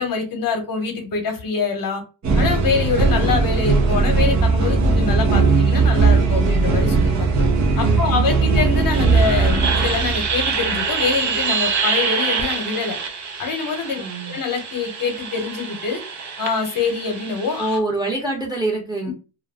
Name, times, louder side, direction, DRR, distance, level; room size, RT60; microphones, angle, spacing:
voice 1, 0.0-2.0 2.4-7.3 7.8-13.0 13.4-16.0 16.4-17.8, left 5 dB, 55° left, 4 dB, 0.9 m, -25 dB
sound 1, 2.2-17.8, right 4 dB, 45° right, 0.7 m, -20 dB
voice 2, 7.8-8.2 14.0-14.4 17.6-19.1, right 2 dB, 10° right, -1 dB, 0.8 m, -25 dB
2.3 x 2.1 x 3.3 m, 0.31 s
cardioid pair, 120°, 41 cm